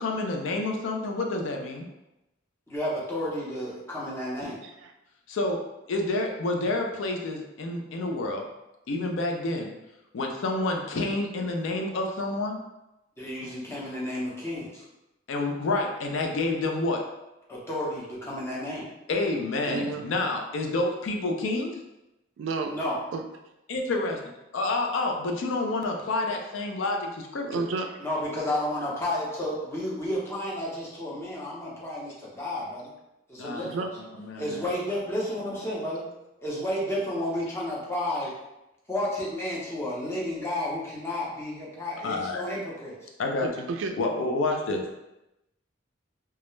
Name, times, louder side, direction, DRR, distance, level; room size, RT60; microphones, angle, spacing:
voice 1, 0.0-1.9 5.3-5.6 5.9-8.5 8.9-9.7 10.1-12.6 15.3-17.0 19.1-21.8 23.7-24.2 24.5-27.6 33.4-33.7 34.3-34.6 42.0-42.4 43.2-43.5 44.0-45.0, left 2 dB, 80° left, 2 dB, 0.4 m, -28 dB
voice 2, 2.7-4.6 13.2-14.8 17.5-18.9 22.7-22.9 28.0-32.9 33.3-33.7 34.4-36.0 36.4-38.3 38.9-42.9, left 1 dB, 15° left, -6 dB, 0.6 m, -31 dB
voice 3, 4.6-4.9 19.6-20.1 22.4-22.7 23.1-23.2 27.4-28.1 33.5-33.9 43.4-43.9, right 4 dB, 75° right, 5 dB, 0.3 m, -32 dB
2.3 x 2.0 x 3.0 m, 0.93 s
head